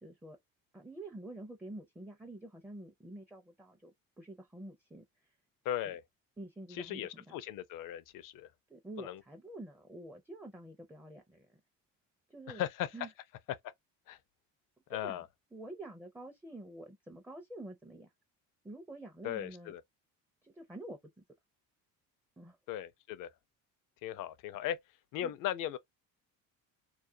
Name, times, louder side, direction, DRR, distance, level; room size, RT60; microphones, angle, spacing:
voice 1, 0.0-0.4 0.7-3.9 4.2-5.3 5.9-6.0 6.4-7.3 8.7-11.6 12.3-12.6 12.9-13.1 14.9-18.1 18.6-19.8 20.4-21.1 22.4-22.6 25.2-25.3, right 1 dB, 5° right, 0.4 m, -48 dB
voice 2, 5.6-6.0 6.7-8.5 9.0-9.2 12.5-12.9 14.1-14.2 14.9-15.3 19.2-19.8 22.7-23.3 24.0-24.8 25.1-25.8, left 11 dB, 60° left, 0.5 m, -37 dB
2.4 x 2.1 x 2.6 m
cardioid pair, 105°, 36 cm